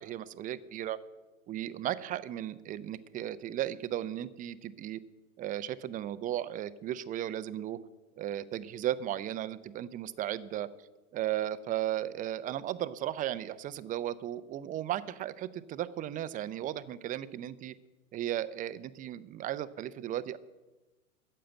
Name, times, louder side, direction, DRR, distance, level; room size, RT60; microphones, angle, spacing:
voice 1, 0.0-1.0 1.5-5.0 5.4-7.8 8.2-10.7 11.1-17.7 18.1-20.4, right 12 dB, 20° right, 14 dB, 0.6 m, -35 dB
14.5 x 7.6 x 8.9 m, 1.1 s
hypercardioid pair, 105°, 41 cm